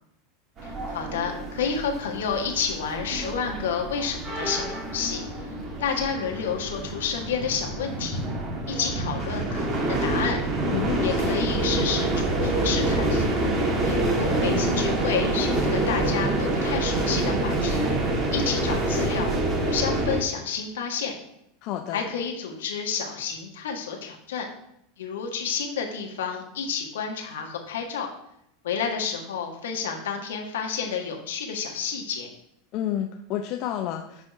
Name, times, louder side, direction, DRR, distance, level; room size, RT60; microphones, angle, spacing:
voice 1, 0.6-5.2 5.8-8.2 8.7-10.4 11.0-13.4 13.8-17.8 18.3-19.3 19.6-21.1 21.9-24.5 25.0-28.1 28.6-32.3, left 6 dB, 70° left, 2 dB, 1.5 m, -30 dB
sound 1, 0.6-20.2, right 2 dB, 30° right, 1.7 m, -26 dB
voice 2, 10.7-11.4 21.6-22.0 32.7-34.3, left 11 dB, 50° left, 3 dB, 0.6 m, -30 dB
8.3 x 3.5 x 4.7 m, 0.77 s
hypercardioid pair, 85°, 0 cm